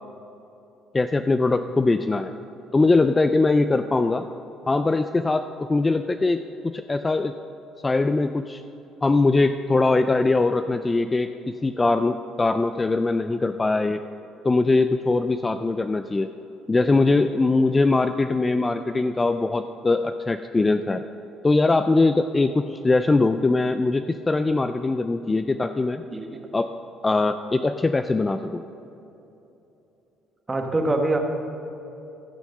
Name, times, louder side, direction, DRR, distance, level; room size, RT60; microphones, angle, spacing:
voice 1, 0.9-2.3 2.7-4.2 4.7-7.3 7.8-8.6 9.0-14.0 14.4-16.3 16.7-21.0 21.4-26.0 26.5-26.7 27.0-28.6, left 3 dB, 20° left, 9 dB, 0.3 m, -21 dB
voice 2, 30.5-31.2, right 2 dB, 20° right, 4 dB, 1.2 m, -24 dB
14.0 x 6.3 x 6.5 m, 3.0 s
cardioid pair, 120°, 0 cm